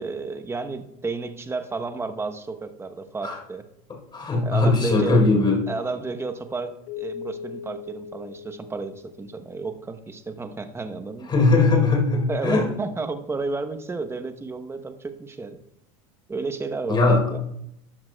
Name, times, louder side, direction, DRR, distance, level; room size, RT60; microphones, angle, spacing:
voice 1, 0.0-3.6 4.4-5.2 5.7-11.4 12.3-15.6 16.3-17.4, right 3 dB, 15° right, 8 dB, 0.8 m, -32 dB
voice 2, 4.1-5.6 11.3-12.7 16.9-17.3, left 3 dB, 25° left, 2 dB, 3.8 m, -19 dB
Keyboard (musical), 6.9-9.8, left 7 dB, 70° left, 1.1 m, -39 dB
13.5 x 10.5 x 2.2 m, 0.81 s
supercardioid pair, 105°, 18 cm